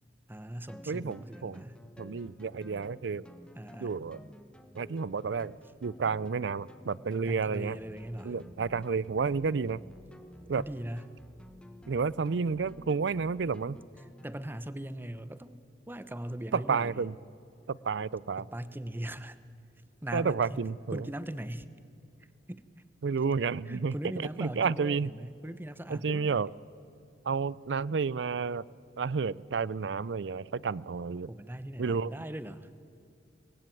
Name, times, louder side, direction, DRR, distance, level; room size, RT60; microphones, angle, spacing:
voice 1, 0.3-1.8 3.6-3.9 7.2-8.3 10.6-11.1 14.2-15.6 15.9-17.0 18.4-19.4 20.0-20.6 20.9-21.7 22.5-22.6 23.7-26.4 31.3-32.7, right 1 dB, 10° right, 13 dB, 0.8 m, -40 dB
sound 1, 0.7-14.4, equal, 5° left, 1.2 m, -52 dB
voice 2, 0.9-1.7 2.0-3.3 3.8-4.2 4.7-7.8 8.2-9.8 10.5-10.6 11.9-13.8 16.5-17.2 17.7-18.5 20.1-21.1 23.0-25.1 25.9-26.5 27.2-28.7 29.0-31.3 31.8-32.1, right 5 dB, 85° right, 22 dB, 0.5 m, -31 dB
24.0 x 19.5 x 9.1 m, 2.4 s
head